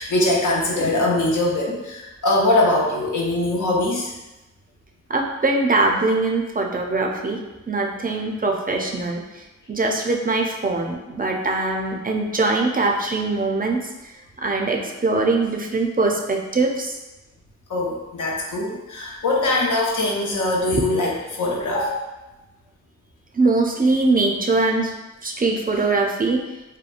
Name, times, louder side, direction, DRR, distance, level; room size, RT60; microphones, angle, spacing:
voice 1, 0.0-4.1 17.7-22.0, left 2 dB, 80° left, -2 dB, 0.6 m, -22 dB
voice 2, 5.1-14.1 14.4-17.0 20.7-20.9 23.3-24.9 25.2-26.4, right 3 dB, 30° right, 1 dB, 0.4 m, -22 dB
2.9 x 2.2 x 2.4 m, 1.0 s
cardioid pair, 45°, 30 cm